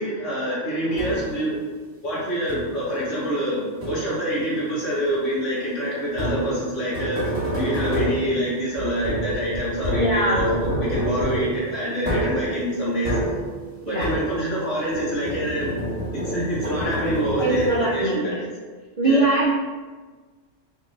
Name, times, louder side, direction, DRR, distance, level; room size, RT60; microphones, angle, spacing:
voice 1, 0.0-1.6 2.0-13.2 13.9-15.7 16.1-18.4 19.0-19.3, equal, 75° left, -8 dB, 1.9 m, -26 dB
sound 1, 1.0-1.5 2.5-3.0 3.8-4.4 6.1-14.6 14.9-18.1, equal, 75° right, 1.5 m, -28 dB
voice 2, 10.0-10.4 13.8-14.1 17.4-18.4 19.0-19.5, right 2 dB, 55° right, -4 dB, 0.3 m, -21 dB
4.4 x 2.7 x 3.2 m, 1.4 s
omnidirectional pair, 1.3 m